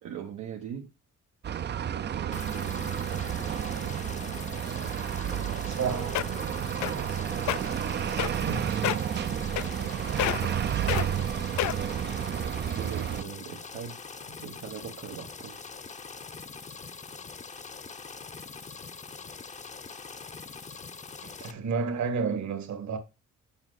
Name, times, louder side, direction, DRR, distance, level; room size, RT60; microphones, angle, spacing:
voice 1, 0.0-0.9 1.9-3.3 6.9-7.4 9.6-9.8 11.5-12.3 12.7-14.0 14.4-15.7, right 8 dB, 85° right, 1.1 m, -41 dB
sound 1, 1.4-13.2, right 9 dB, 35° right, 0.4 m, -31 dB
sound 2, 2.3-21.5, left 5 dB, 25° left, 0.7 m, -43 dB
sound 3, 5.7-5.8 6.1-6.4 6.8-7.1 7.4-7.6 8.2-8.5 8.8-9.1 9.6-9.9 10.2-10.5 10.9-11.1 11.6-12.0 12.6-12.7, left 14 dB, 70° left, 0.4 m, -28 dB
voice 2, 5.7-6.2 8.4-8.8 21.2-23.0, right 5 dB, 70° right, 1.7 m, -31 dB
7.2 x 4.9 x 3.9 m
cardioid pair, 90°, 30 cm